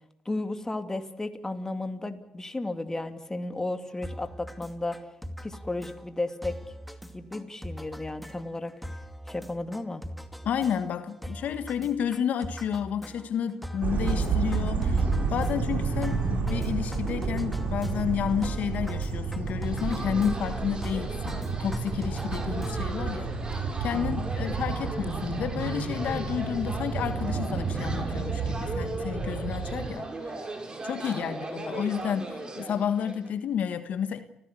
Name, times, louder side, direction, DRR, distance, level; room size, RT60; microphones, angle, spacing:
voice 1, 0.2-5.0 5.4-6.5 7.1-8.7 9.3-10.0 23.9-24.6 31.2-31.5, left 2 dB, 20° left, 8 dB, 2.8 m, -34 dB
sound 1, 4.0-23.1, equal, ahead, 2.4 m, -42 dB
voice 2, 10.4-23.3 23.8-30.4 30.8-34.2, left 8 dB, 70° left, 10 dB, 1.5 m, -31 dB
sound 2, 13.8-29.9, right 4 dB, 65° right, 6.5 m, -30 dB
sound 3, 19.6-33.3, right 2 dB, 30° right, 5.9 m, -38 dB
30.0 x 16.0 x 8.4 m, 0.80 s
supercardioid pair, 70°, 3 cm